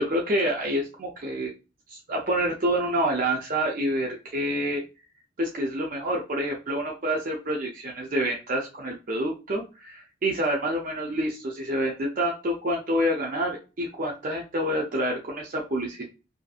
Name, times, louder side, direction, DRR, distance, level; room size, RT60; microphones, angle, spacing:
voice 1, 0.0-1.5 1.9-4.8 5.4-16.0, right 1 dB, 45° right, -1 dB, 0.5 m, -27 dB
2.5 x 2.4 x 2.3 m, 0.30 s
head